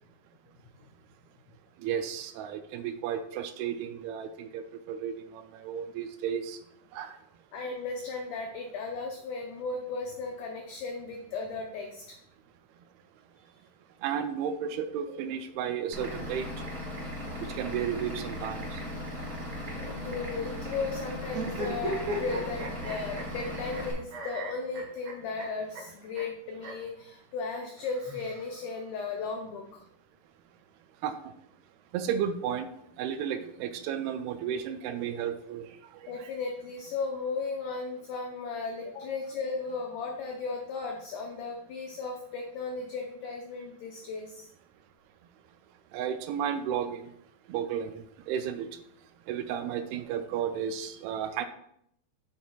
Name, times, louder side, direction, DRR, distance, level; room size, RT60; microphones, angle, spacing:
voice 1, 1.8-6.6 6.9-7.1 14.0-16.5 17.4-18.8 31.0-31.2 31.9-32.7 33.0-35.7 36.0-36.3 45.9-47.1 47.5-48.7 49.3-51.5, right 8 dB, 85° right, 9 dB, 2.4 m, -33 dB
voice 2, 7.5-12.2 19.8-29.8 36.1-44.5, left 4 dB, 85° left, 2 dB, 1.8 m, -36 dB
Vehicle / Engine, 15.9-23.9, left 1 dB, 20° right, 2.2 m, -37 dB
sound 1, 21.3-23.8 24.1-25.5 25.7-25.8 26.1-26.2 26.6-26.7 27.8-28.8, right 2 dB, 60° right, 1.9 m, -37 dB
10.0 x 5.5 x 2.3 m, 0.71 s
omnidirectional pair, 4.5 m